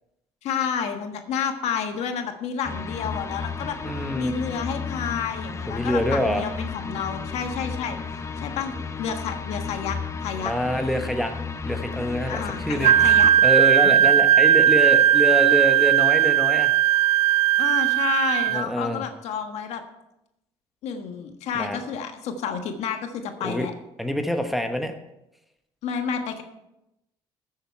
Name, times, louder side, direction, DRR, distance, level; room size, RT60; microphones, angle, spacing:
voice 1, 0.4-3.8 4.1-10.5 12.2-13.3 13.8-14.1 17.6-19.8 20.8-23.7 25.8-26.4, left 7 dB, 70° left, 6 dB, 1.4 m, -30 dB
sound 1, 2.6-13.3, left 5 dB, 25° left, 0.8 m, -33 dB
voice 2, 3.8-4.3 5.7-6.4 10.4-11.3 11.7-13.1 13.4-16.7 18.5-19.0 21.5-21.8 23.4-23.7 24.0-24.9, equal, ahead, 5 dB, 1.2 m, -25 dB
Wind instrument woodwind instrument, 12.8-18.6, right 11 dB, 70° right, 0.4 m, -18 dB
14.0 x 7.4 x 4.6 m, 0.88 s
cardioid pair, 95°, 11 cm